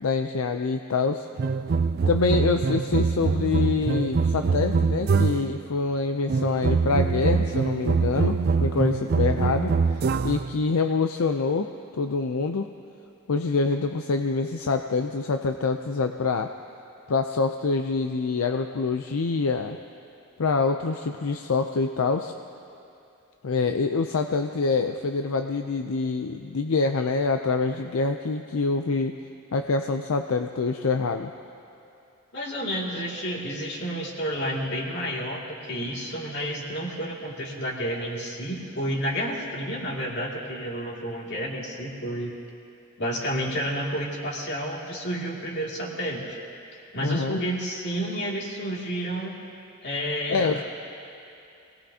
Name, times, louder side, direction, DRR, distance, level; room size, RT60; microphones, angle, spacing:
voice 1, 0.0-1.3 2.1-9.7 10.2-11.7 12.0-12.7 13.3-16.5 17.1-19.8 20.4-22.3 23.4-29.1 29.5-31.3 47.0-47.4 50.3-50.6, left 4 dB, 75° left, 6 dB, 0.5 m, -25 dB
sound 1, 1.4-5.6 6.3-10.6, right 5 dB, 45° right, 0.4 m, -24 dB
voice 2, 32.3-42.3 43.0-46.2 46.7-49.3 49.8-50.6, equal, 50° left, -3 dB, 2.4 m, -30 dB
26.5 x 18.5 x 2.8 m, 2.7 s
head